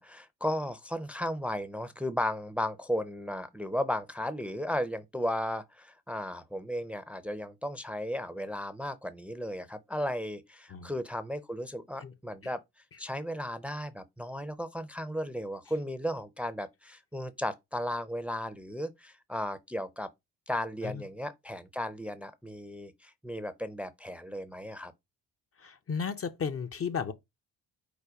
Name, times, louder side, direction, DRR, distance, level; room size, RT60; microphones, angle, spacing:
voice 1, 0.0-12.6 13.0-20.1 20.5-24.9, left 1 dB, 5° right, 0.6 m, -35 dB
voice 2, 25.6-27.1, left 6 dB, 35° left, 0.6 m, -34 dB
5.0 x 2.2 x 4.6 m
supercardioid pair, 60°, 38 cm